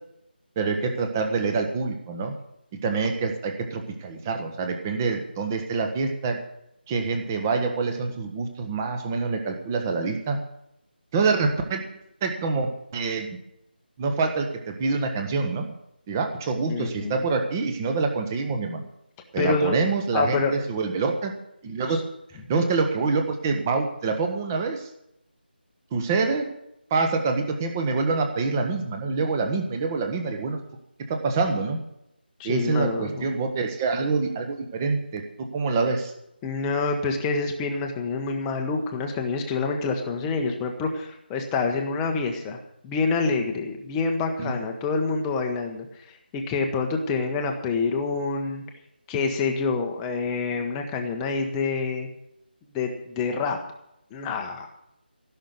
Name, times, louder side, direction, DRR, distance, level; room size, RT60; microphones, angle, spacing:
voice 1, 0.5-2.3 2.7-6.4 6.9-10.4 11.1-11.8 12.2-13.4 14.0-15.7 16.1-18.9 19.3-21.3 21.6-22.0 22.5-24.9 25.9-26.5 26.9-30.6 31.1-31.8 32.4-36.1 44.4-44.5, right 4 dB, 15° right, 5 dB, 1.3 m, -26 dB
voice 2, 16.7-17.2 19.4-19.8 20.1-20.5 21.9-22.0 32.4-33.3 36.4-48.6 49.1-52.1 52.7-53.6 54.1-54.7, left 4 dB, 10° left, 2 dB, 1.1 m, -27 dB
15.5 x 6.5 x 9.6 m, 0.80 s
figure-of-eight pair, 160°, 6 cm